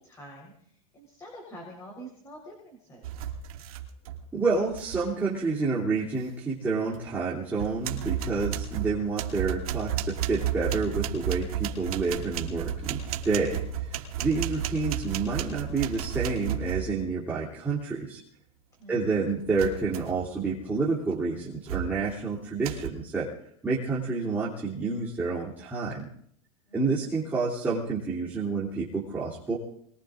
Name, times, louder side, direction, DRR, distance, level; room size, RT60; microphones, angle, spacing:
voice 1, 0.0-3.0 18.8-19.3 26.7-27.1, right 1 dB, 15° left, 0 dB, 4.2 m, -47 dB
sound 1, 3.0-4.2 4.5-5.0 6.9-7.0 7.5-17.1 19.6-20.3 20.8-21.0 21.7-22.1 22.6-22.9, right 9 dB, 85° right, 2.7 m, -33 dB
voice 2, 4.3-18.2 18.9-23.3 23.6-26.1 26.7-29.6, right 4 dB, 10° right, -7 dB, 2.8 m, -29 dB
26.5 x 21.5 x 2.5 m, 0.67 s
supercardioid pair, 145°, 18 cm